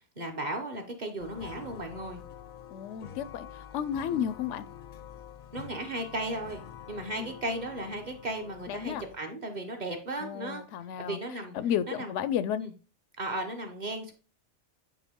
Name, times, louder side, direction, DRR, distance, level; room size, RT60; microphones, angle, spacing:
voice 1, 0.2-2.2 4.1-4.2 5.5-6.6 6.9-10.6 11.0-11.5 11.9-12.2 12.6-12.7 13.2-14.1, right 1 dB, 40° right, 1.1 m, -35 dB
sound 1, 1.2-9.2, left 9 dB, 55° left, 0.6 m, -47 dB
voice 2, 2.7-4.6 7.2-7.3 8.7-9.0 10.2-12.6, left 9 dB, 85° left, 0.9 m, -33 dB
8.3 x 3.4 x 3.6 m
omnidirectional pair, 1.2 m